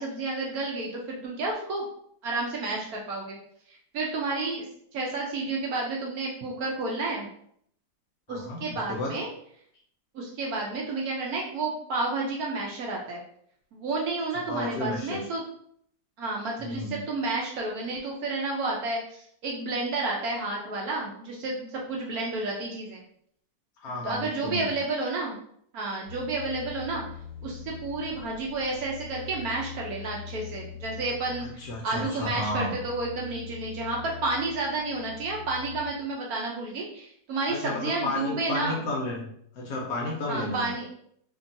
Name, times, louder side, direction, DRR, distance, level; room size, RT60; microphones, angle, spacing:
voice 1, 0.0-1.9 2.2-3.4 3.7-4.7 4.9-7.3 8.3-9.3 10.1-13.2 13.7-15.4 16.2-23.0 23.9-25.4 25.7-27.0 27.4-38.8 40.3-40.9, right 3 dB, 70° right, -2 dB, 1.0 m, -31 dB
voice 2, 8.3-9.1 14.5-15.2 16.6-17.0 23.8-24.6 31.4-32.7 37.5-40.7, left 2 dB, 70° left, -1 dB, 0.9 m, -32 dB
sound 1, 26.0-35.8, left 7 dB, 35° right, 1.3 m, -43 dB
2.9 x 2.7 x 2.6 m, 0.66 s
omnidirectional pair, 1.9 m